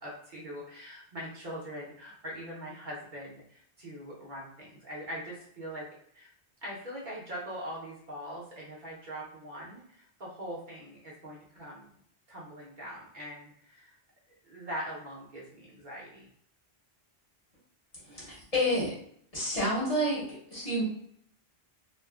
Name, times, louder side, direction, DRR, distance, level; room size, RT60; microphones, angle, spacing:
voice 1, 0.0-5.9 6.1-6.3 6.6-11.9 12.3-14.0 14.4-16.3, equal, 55° right, -5 dB, 0.8 m, -42 dB
voice 2, 18.0-19.0 19.3-20.8, equal, 40° left, -7 dB, 1.0 m, -29 dB
2.5 x 2.4 x 2.3 m, 0.66 s
omnidirectional pair, 1.0 m